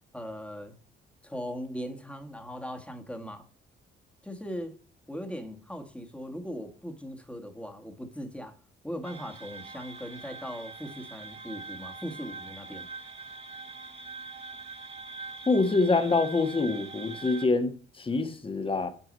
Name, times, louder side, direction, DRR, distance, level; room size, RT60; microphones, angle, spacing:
voice 1, 0.1-0.8 1.2-3.5 4.2-4.8 5.1-8.6 8.8-12.9, equal, 5° left, 1.5 m, -39 dB
sound 1, 9.0-17.5, right 3 dB, 30° right, 1.6 m, -43 dB
voice 2, 15.5-18.9, left 3 dB, 25° left, 1.3 m, -26 dB
8.4 x 4.7 x 5.2 m
cardioid pair, 90°, 20 cm